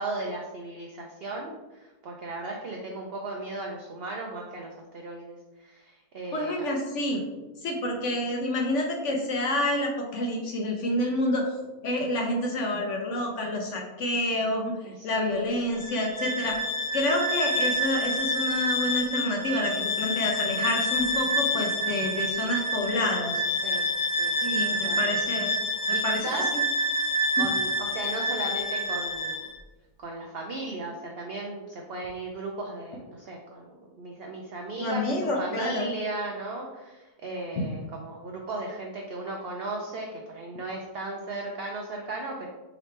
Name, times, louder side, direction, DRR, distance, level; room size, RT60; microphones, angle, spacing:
voice 1, 0.0-6.6 14.8-15.4 23.6-23.9 24.2-25.2 25.9-26.4 27.4-29.4 30.0-42.5, right 2 dB, 75° right, 0 dB, 0.5 m, -36 dB
voice 2, 6.3-7.2 7.6-11.5 11.8-14.7 15.0-16.6 16.9-23.3 24.4-25.5 25.9-26.2 26.5-26.6 34.8-35.9 37.6-37.7, left 1 dB, 60° left, 1 dB, 0.9 m, -28 dB
Bowed string instrument, 15.7-29.5, equal, 85° left, 2.0 m, -28 dB
5.0 x 3.0 x 3.2 m, 1.1 s
omnidirectional pair, 1.7 m